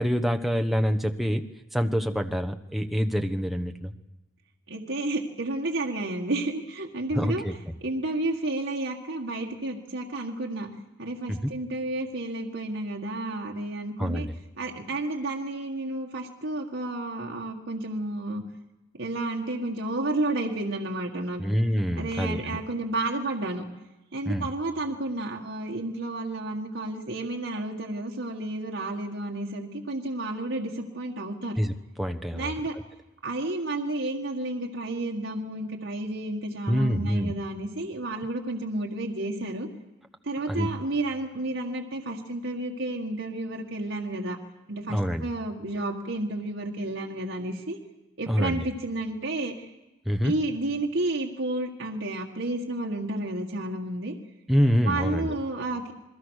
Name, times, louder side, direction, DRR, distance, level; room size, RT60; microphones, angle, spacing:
voice 1, 0.0-1.4 1.7-3.9 7.1-7.5 11.3-11.5 14.0-14.3 21.4-22.6 24.3-24.5 31.6-32.5 36.7-37.3 40.5-40.7 44.9-45.3 48.3-48.6 50.0-50.3 54.5-55.3, equal, ahead, 4 dB, 1.2 m, -26 dB
voice 2, 4.7-7.4 7.8-10.7 11.0-14.3 14.6-18.4 18.9-21.4 21.9-23.7 24.1-31.6 32.3-32.8 33.2-39.7 40.2-44.4 44.7-47.8 48.2-49.7 50.2-54.2 54.8-55.9, right 2 dB, 70° right, 0 dB, 1.9 m, -31 dB
28.0 x 21.5 x 6.6 m, 1.0 s
head